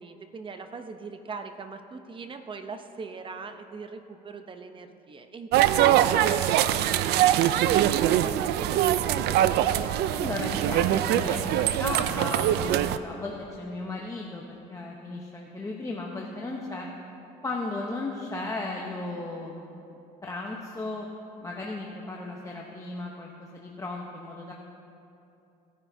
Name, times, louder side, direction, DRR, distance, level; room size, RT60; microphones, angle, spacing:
voice 1, 0.0-7.7 8.1-9.5, right 4 dB, 30° right, 7 dB, 0.7 m, -41 dB
sound 1, 5.5-13.0, right 12 dB, 75° right, 0.4 m, -23 dB
voice 2, 10.1-14.4 14.7-16.9 17.4-19.9 20.2-21.1 21.4-24.5, left 2 dB, 20° left, -1 dB, 0.9 m, -35 dB
17.0 x 9.9 x 2.7 m, 2.8 s
cardioid pair, 110°, 17 cm